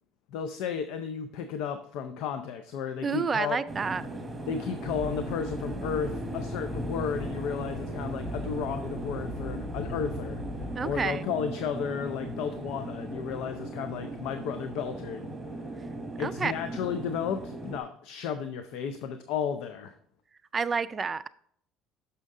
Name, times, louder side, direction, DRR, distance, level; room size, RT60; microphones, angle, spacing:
voice 1, 0.3-3.6 4.5-15.3 16.2-19.9, left 7 dB, 75° left, 9 dB, 0.4 m, -33 dB
voice 2, 3.0-4.0 10.8-11.2 16.2-16.5 20.5-21.3, right 5 dB, 30° right, 13 dB, 0.3 m, -29 dB
sound 1, 3.7-17.8, right 2 dB, 10° right, 1.1 m, -38 dB
Accelerating revving vroom, 4.8-11.1, left 1 dB, 55° left, 2.8 m, -39 dB
6.3 x 5.6 x 3.6 m, 0.63 s
supercardioid pair, 100°, 0 cm